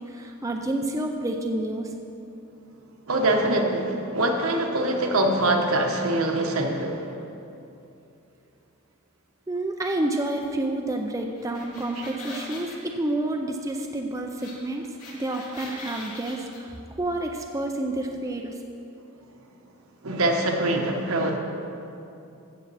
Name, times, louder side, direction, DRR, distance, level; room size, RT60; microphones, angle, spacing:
voice 1, 0.1-1.9 9.5-14.9 15.1-18.6, right 1 dB, 15° right, 2 dB, 0.4 m, -29 dB
voice 2, 3.1-7.1 20.0-21.4, right 1 dB, 70° right, 3 dB, 1.1 m, -24 dB
sound 1, 11.4-12.8 14.4-14.5 14.8-16.6, left 2 dB, 80° left, 2.5 m, -41 dB
14.5 x 7.2 x 4.1 m, 2.8 s
head